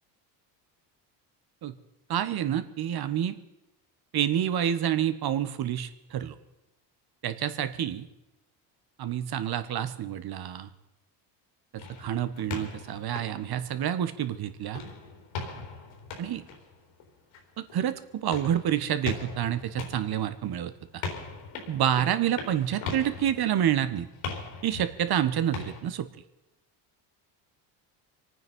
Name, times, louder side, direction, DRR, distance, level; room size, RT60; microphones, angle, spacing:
voice 1, 2.1-3.4 4.1-6.3 7.2-8.1 9.0-10.7 11.7-14.8 16.2-16.4 17.6-21.0 21.7-24.1 24.6-26.1, right 10 dB, 50° right, 11 dB, 1.4 m, -28 dB
sound 1, 11.8-14.3 14.7-25.8, left 4 dB, 70° left, 3.9 m, -40 dB
25.0 x 9.3 x 5.4 m, 0.93 s
supercardioid pair, 85°, 49 cm